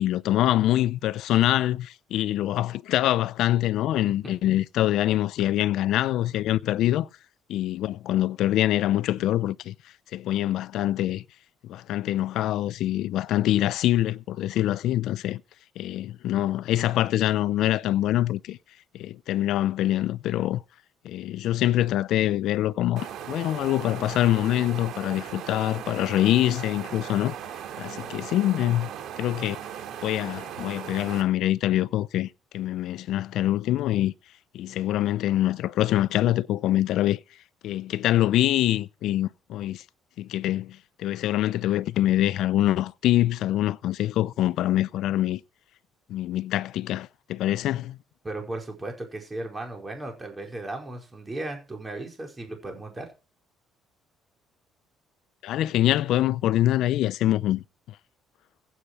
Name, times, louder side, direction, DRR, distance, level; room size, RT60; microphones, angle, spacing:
voice 1, 0.0-7.1 7.5-9.7 10.1-11.2 11.7-15.4 15.8-18.6 18.9-20.6 21.0-27.3 27.8-28.9 29.2-29.6 30.0-32.3 32.5-34.1 34.5-37.2 37.6-39.8 40.2-45.4 46.1-48.0 55.4-57.6, left 13 dB, 70° left, 0.6 m, -24 dB
sound 1, 23.0-31.2, right 9 dB, 65° right, 2.8 m, -38 dB
voice 2, 48.2-53.1, right 2 dB, 15° right, 5.0 m, -36 dB
16.0 x 8.2 x 4.7 m
cardioid pair, 125°, 0 cm